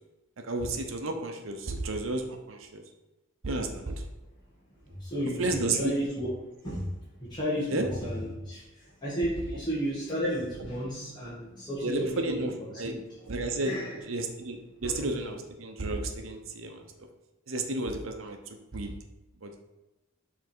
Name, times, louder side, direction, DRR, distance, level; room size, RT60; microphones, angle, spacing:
voice 1, 0.5-2.8 3.4-4.0 5.4-5.9 7.7-7.9 11.8-12.5 12.8-12.9 13.3-13.7 14.1-16.7 17.5-18.4 18.7-18.9 19.4-19.6, right 2 dB, 85° right, 5 dB, 0.9 m, -32 dB
voice 2, 4.8-6.3 6.6-6.9 7.2-13.1 13.6-14.0 14.8-15.1, equal, 20° left, -10 dB, 1.8 m, -33 dB
7.1 x 3.7 x 4.5 m, 1.1 s
head